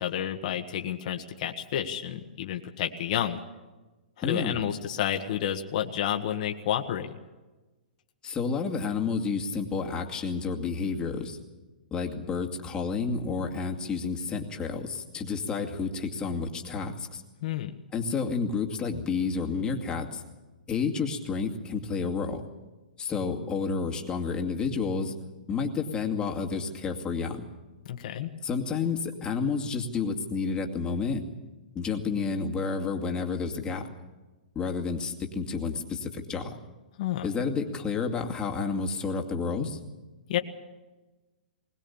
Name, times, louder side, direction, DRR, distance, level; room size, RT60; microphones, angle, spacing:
voice 1, 0.0-3.4 4.2-7.1 17.4-17.7 27.8-28.3 37.0-37.3 40.3-40.4, left 10 dB, 50° left, 4 dB, 1.6 m, -30 dB
voice 2, 4.2-4.6 8.2-11.4 11.9-17.2 17.9-20.2 20.7-22.4 23.0-25.1 25.5-27.4 28.4-31.2 31.7-33.9 34.6-36.6 37.2-39.8, left 5 dB, 15° left, 2 dB, 2.3 m, -30 dB
21.5 x 19.5 x 7.2 m, 1.2 s
hypercardioid pair, 140°, 5 cm